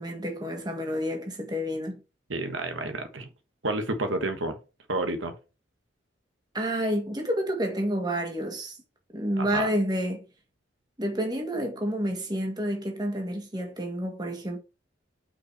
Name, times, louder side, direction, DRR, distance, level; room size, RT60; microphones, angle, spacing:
voice 1, 0.0-2.0 6.5-8.8 9.1-10.2 11.0-14.6, equal, 20° right, 1.6 m, -29 dB
voice 2, 2.3-3.3 3.6-4.6 4.9-5.3 9.4-9.7, right 2 dB, 80° right, 1.3 m, -30 dB
5.8 x 5.0 x 4.6 m
head